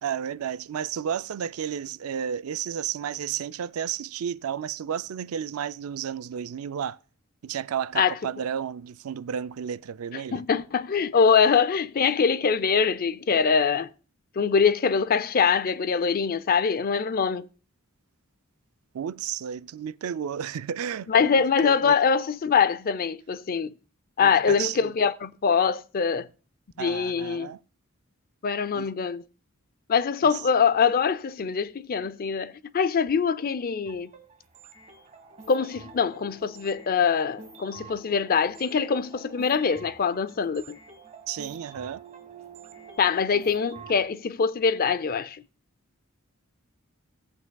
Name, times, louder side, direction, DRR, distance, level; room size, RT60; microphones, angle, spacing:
voice 1, 0.0-7.0 7.4-10.4 18.9-22.0 24.2-24.9 26.8-27.6 28.7-28.9 30.3-30.4 41.3-42.0, right 8 dB, 85° right, 0.4 m, -32 dB
voice 2, 10.3-13.9 14.4-17.5 21.1-23.7 24.2-26.3 26.8-27.5 28.4-29.2 29.9-34.1 35.5-40.8 43.0-45.4, left 6 dB, 45° left, 0.5 m, -23 dB
sound 1, 33.9-44.1, right 4 dB, 35° right, 1.4 m, -47 dB
16.5 x 8.3 x 2.3 m
head